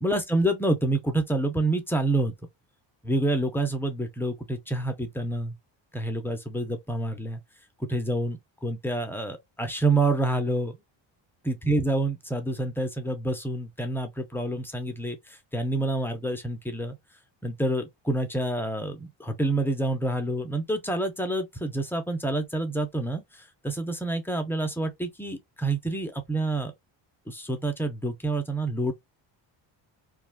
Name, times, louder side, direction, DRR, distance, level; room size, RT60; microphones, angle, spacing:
voice 1, 0.0-2.3 3.0-5.6 5.9-7.4 7.8-10.8 11.4-15.2 15.5-17.0 17.4-26.7 27.3-28.9, right 2 dB, 5° left, 0.3 m, -28 dB
2.4 x 2.2 x 3.3 m
cardioid pair, 140°, 45 cm